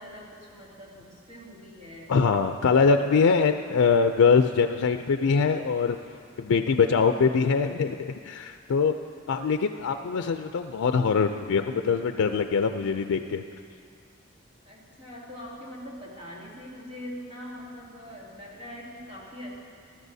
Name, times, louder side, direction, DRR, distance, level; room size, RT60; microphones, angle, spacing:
voice 1, 0.0-2.1 14.6-19.5, equal, 30° right, -6 dB, 2.5 m, -42 dB
voice 2, 2.1-6.0 6.4-8.9 9.3-13.4, left 5 dB, 90° left, 7 dB, 0.4 m, -23 dB
19.5 x 13.0 x 2.7 m, 2.3 s
head